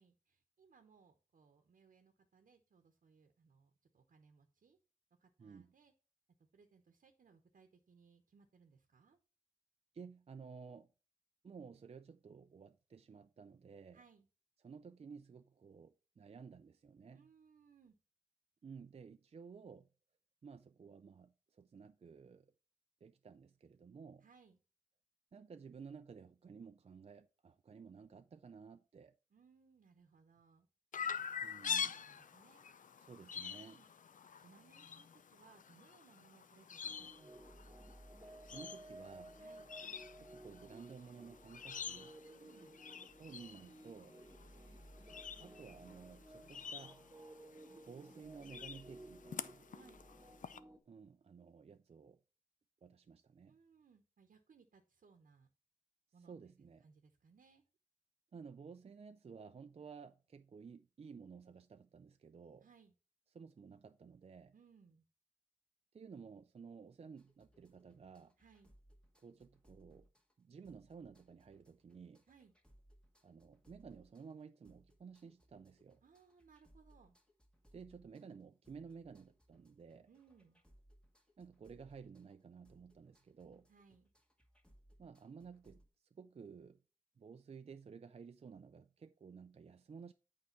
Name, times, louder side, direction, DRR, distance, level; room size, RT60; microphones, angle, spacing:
voice 1, 0.0-4.8 5.2-5.9 6.5-9.2 13.9-14.3 17.1-17.9 24.2-24.6 29.3-30.7 31.8-32.7 33.5-33.9 34.4-37.7 39.3-39.7 42.2-42.8 49.7-50.1 53.4-55.5 56.1-56.5 56.8-57.6 62.6-62.9 64.5-65.0 68.4-68.7 72.3-72.5 76.0-77.2 80.1-80.6 83.7-84.1, right 5 dB, 85° right, 1.0 m, -66 dB
voice 2, 5.4-5.7 9.9-10.9 11.4-14.0 14.6-17.3 18.6-19.9 20.4-22.5 23.0-24.3 25.3-29.2 31.4-32.0 33.0-33.8 38.5-39.4 40.2-42.1 43.2-44.2 45.4-47.0 47.8-49.7 50.9-52.2 52.8-53.6 56.2-56.9 58.3-62.7 63.3-64.5 65.9-68.3 69.2-70.1 70.4-72.2 73.2-76.0 77.7-80.1 81.4-83.7 85.0-85.8 86.1-86.8 87.2-90.1, right 5 dB, 50° right, 0.4 m, -54 dB
Chirp tweet, 30.9-50.6, left 7 dB, 75° left, 0.5 m, -47 dB
sound 1, 36.8-50.8, right 1 dB, 25° right, 1.3 m, -56 dB
sound 2, 67.2-85.9, equal, 5° left, 1.7 m, -69 dB
8.4 x 4.8 x 4.4 m
wide cardioid pair, 75°, 14 cm